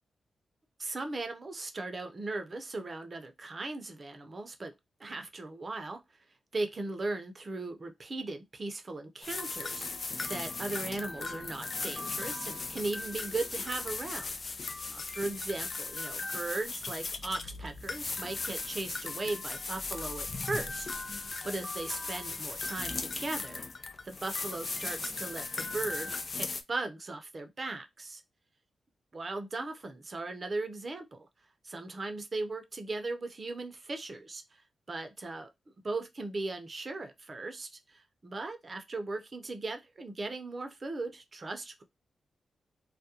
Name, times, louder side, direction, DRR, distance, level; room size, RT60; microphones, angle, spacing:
voice 1, 0.8-4.7 5.0-6.0 6.5-9.9 10.3-14.3 14.6-23.6 24.0-28.2 29.1-31.3 31.6-34.6 34.9-41.8, right 2 dB, 45° right, 0.6 m, -38 dB
sound 1, 9.2-26.6, left 3 dB, 50° left, 0.4 m, -37 dB
2.3 x 2.1 x 2.8 m
cardioid pair, 55°, 0 cm